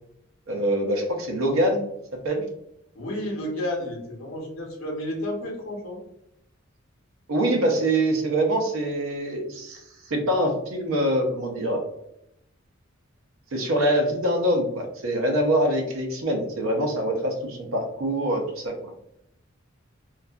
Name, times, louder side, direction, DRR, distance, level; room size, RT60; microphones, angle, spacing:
voice 1, 0.5-1.8 2.2-2.4 7.3-11.8 13.5-18.9, right 1 dB, 85° right, 3 dB, 0.6 m, -24 dB
voice 2, 2.9-6.0, left 1 dB, 80° left, 0 dB, 0.7 m, -31 dB
2.5 x 2.3 x 2.3 m, 0.79 s
head